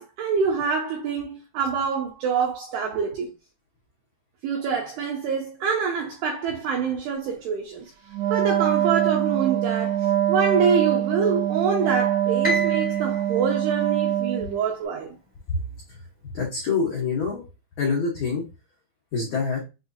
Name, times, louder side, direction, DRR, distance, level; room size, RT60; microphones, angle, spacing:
voice 1, 0.0-3.3 4.4-7.9 8.3-15.2, right 5 dB, 85° right, 2.3 m, -26 dB
Wind instrument woodwind instrument, 8.1-14.6, right 11 dB, 70° right, 2.6 m, -23 dB
Piano, 12.4-14.7, left 1 dB, 10° left, 0.4 m, -32 dB
voice 2, 16.2-17.4 17.8-18.4 19.1-19.6, left 4 dB, 85° left, 1.6 m, -25 dB
7.1 x 2.7 x 2.4 m
omnidirectional pair, 5.5 m